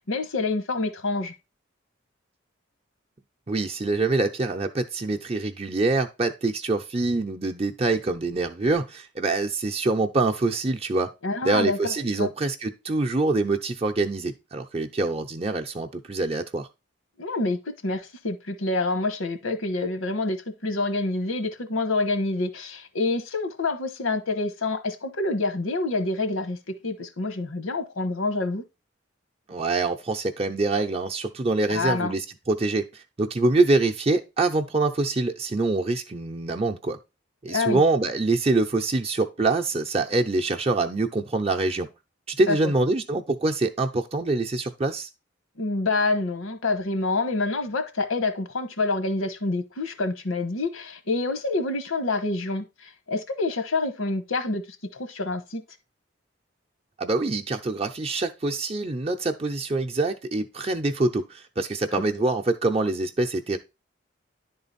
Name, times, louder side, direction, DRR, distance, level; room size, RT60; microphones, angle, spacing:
voice 1, 0.1-1.3 11.2-12.3 17.2-17.6 17.8-20.4 20.6-28.6 31.7-32.1 37.5-37.8 42.5-42.7 45.6-54.6 54.9-55.6, left 3 dB, 85° left, 1.2 m, -27 dB
voice 2, 3.5-11.1 11.4-16.7 29.5-37.0 37.4-41.9 42.3-45.1 57.0-63.6, right 2 dB, 30° right, 0.6 m, -25 dB
10.5 x 3.9 x 4.1 m
head